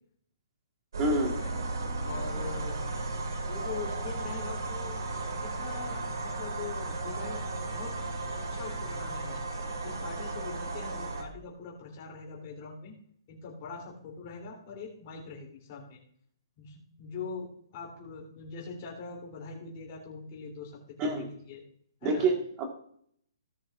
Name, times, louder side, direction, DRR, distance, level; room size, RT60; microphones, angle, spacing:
sound 1, 0.9-11.2, right 2 dB, 60° right, 2.4 m, -35 dB
voice 1, 1.0-1.3 21.0-21.3 22.0-22.7, right 2 dB, 15° right, 2 dB, 1.7 m, -27 dB
voice 2, 2.0-2.8 3.4-5.1 5.4-7.9 8.4-9.4 9.8-13.0 13.3-16.0 16.6-21.6 22.0-22.3, left 5 dB, 25° left, -2 dB, 3.3 m, -42 dB
17.5 x 6.9 x 2.6 m, 0.64 s
hypercardioid pair, 175°, 2 cm